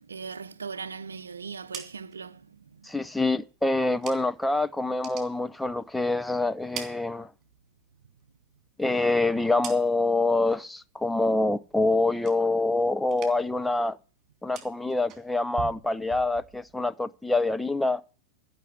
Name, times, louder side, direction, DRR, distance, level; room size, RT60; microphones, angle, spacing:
voice 1, 0.0-2.9, right 5 dB, 70° right, 0.6 m, -39 dB
sound 1, 1.4-4.5 4.8-6.2 6.5-7.8 8.1-10.3 10.6-11.1 11.4-12.8 13.0-13.6 13.9-16.8, right 8 dB, 30° right, 3.1 m, -46 dB
voice 2, 2.8-7.3 8.8-14.0 14.4-18.0, left 2 dB, 5° left, 0.5 m, -26 dB
14.0 x 6.1 x 9.1 m
figure-of-eight pair, 90°, 0 cm